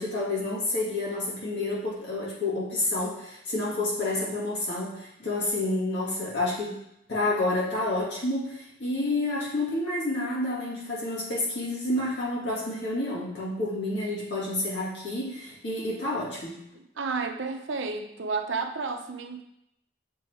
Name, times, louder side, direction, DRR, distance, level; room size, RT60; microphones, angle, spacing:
voice 1, 0.0-6.7 7.1-16.6, left 2 dB, 65° left, -6 dB, 2.2 m, -29 dB
voice 2, 16.7-19.4, right 4 dB, 85° right, 6 dB, 0.6 m, -31 dB
6.8 x 3.5 x 4.5 m, 0.80 s
head